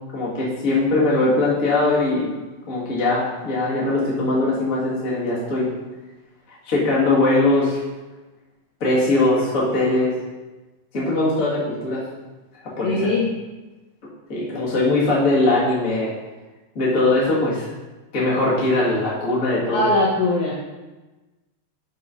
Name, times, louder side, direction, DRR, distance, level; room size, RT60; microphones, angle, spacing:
voice 1, 0.1-2.3 2.7-5.7 6.6-7.8 8.8-10.1 10.9-12.0 12.6-13.1 14.3-16.1 16.7-17.7 18.1-19.8, left 2 dB, 40° left, -7 dB, 1.2 m, -20 dB
voice 2, 12.8-13.2 19.7-20.5, left 2 dB, 85° left, -5 dB, 1.6 m, -20 dB
8.3 x 4.1 x 5.0 m, 1.2 s
omnidirectional pair, 4.8 m